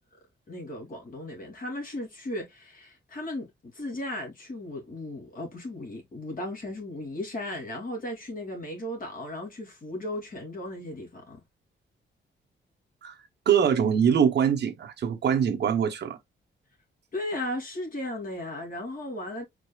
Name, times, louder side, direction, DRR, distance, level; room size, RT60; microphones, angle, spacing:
voice 1, 0.5-11.4 17.1-19.4, left 1 dB, 45° left, 2.7 m, -36 dB
voice 2, 13.5-16.2, right 8 dB, 60° right, 0.9 m, -23 dB
4.9 x 4.6 x 2.3 m
wide cardioid pair, 150°, 20 cm